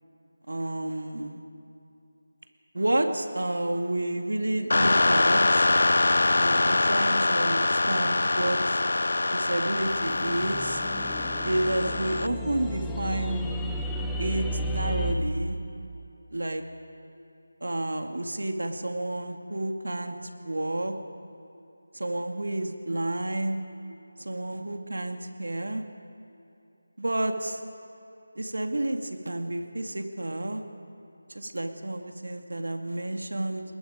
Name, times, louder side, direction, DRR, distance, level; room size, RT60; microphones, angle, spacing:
voice 1, 0.5-1.4 2.7-5.7 6.3-8.8 9.3-10.8 11.4-13.4 14.2-15.6 16.3-16.6 17.6-20.2 20.4-20.9 21.9-23.6 24.2-25.8 27.0-27.6 28.4-30.6 31.3-33.6, right 1 dB, 85° right, 5 dB, 2.1 m, -30 dB
sound 1, 4.7-12.3, left 2 dB, 65° left, 0.6 m, -24 dB
sound 2, 9.8-15.1, equal, 5° left, 0.8 m, -33 dB
29.5 x 20.5 x 5.1 m, 2.8 s
figure-of-eight pair, 175°, 0 cm